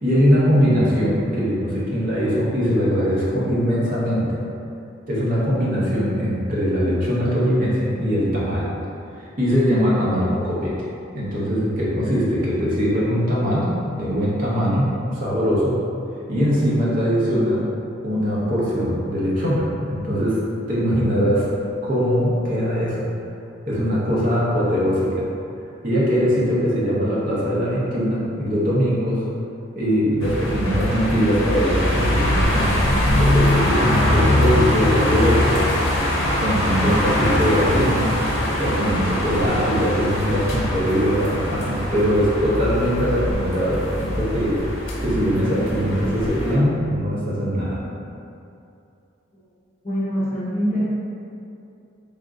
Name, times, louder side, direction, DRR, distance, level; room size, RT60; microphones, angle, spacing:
voice 1, 0.0-4.4 5.1-8.7 9.2-10.8 11.1-15.7 16.3-17.7 18.0-21.5 21.8-23.1 23.7-25.3 25.8-29.3 29.7-35.6 36.4-38.2 38.6-44.6 45.0-47.8, equal, 40° right, -7 dB, 0.7 m, -21 dB
Ext. Night atmosphere rainy street, 30.2-46.6, left 1 dB, 70° left, 0.6 m, -22 dB
voice 2, 49.8-50.8, equal, 35° left, -9 dB, 0.9 m, -23 dB
3.5 x 2.5 x 3.6 m, 2.6 s
head